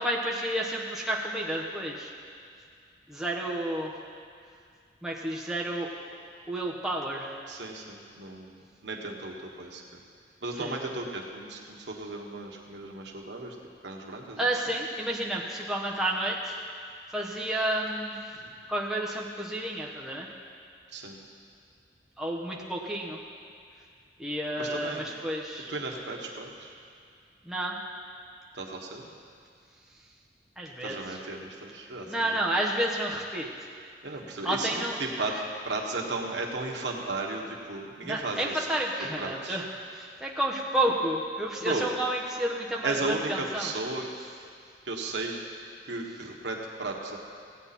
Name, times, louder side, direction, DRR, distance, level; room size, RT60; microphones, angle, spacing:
voice 1, 0.0-2.1 3.1-3.9 5.0-5.9 6.5-7.3 10.6-10.8 14.4-16.6 17.1-18.2 18.7-20.3 22.2-23.2 24.2-25.7 27.4-27.7 30.6-30.9 32.1-33.5 34.4-35.3 38.0-39.6 39.9-43.7, right 1 dB, ahead, -4 dB, 1.0 m, -30 dB
voice 2, 7.5-9.8 10.4-13.5 13.8-14.5 18.3-18.5 20.9-21.2 24.6-25.1 25.7-26.7 28.5-29.1 30.8-32.4 34.0-35.3 35.6-38.7 39.0-39.6 41.6-41.9 42.8-44.1 44.8-45.3 45.8-47.2, right 2 dB, 90° right, 0 dB, 1.4 m, -35 dB
16.5 x 8.7 x 4.2 m, 2.3 s
head